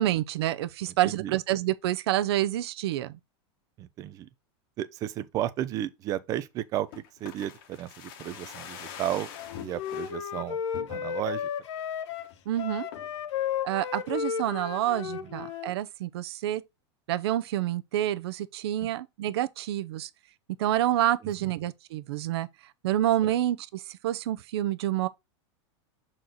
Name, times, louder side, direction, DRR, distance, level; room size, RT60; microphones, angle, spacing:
voice 1, 0.0-3.2 12.5-12.9 13.6-16.6 17.1-20.1 20.6-22.5 22.8-25.1, right 13 dB, 60° right, 0.7 m, -28 dB
voice 2, 1.0-1.3 3.8-4.3 4.8-9.3 9.6-10.6 10.9-11.5 15.0-15.3 18.8-18.9 21.2-21.5 23.2-23.3, right 12 dB, 25° right, 0.5 m, -34 dB
sound 1, 6.9-10.2 10.7-11.4 11.8-11.9 12.1-12.4 12.9-13.2 13.7-14.4 14.7-14.8, left 8 dB, 50° left, 1.2 m, -45 dB
Wind instrument woodwind instrument, 9.3-15.7, left 8 dB, 80° left, 1.0 m, -34 dB
6.5 x 4.3 x 3.8 m
supercardioid pair, 165°, 15 cm